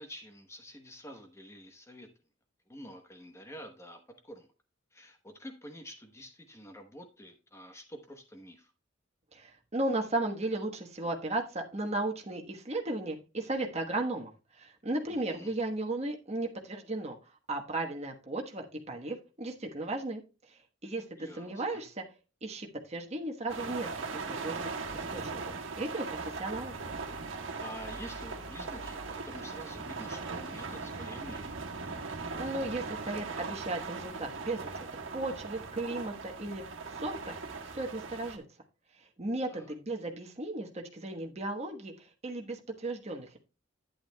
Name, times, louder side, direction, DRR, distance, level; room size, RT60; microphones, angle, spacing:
voice 1, 0.0-2.1 2.7-4.5 4.9-8.7 15.1-15.6 21.2-21.8 27.6-31.6 39.5-39.7, equal, 15° left, 5 dB, 1.0 m, -48 dB
voice 2, 9.3-17.2 17.5-20.2 20.5-22.0 22.4-26.7 32.4-34.9 35.1-37.4 37.7-38.4 39.2-43.4, right 2 dB, 35° right, 2 dB, 1.2 m, -35 dB
sound 1, 23.5-38.4, right 4 dB, 80° right, 1.4 m, -39 dB
11.0 x 9.0 x 2.2 m, 0.32 s
head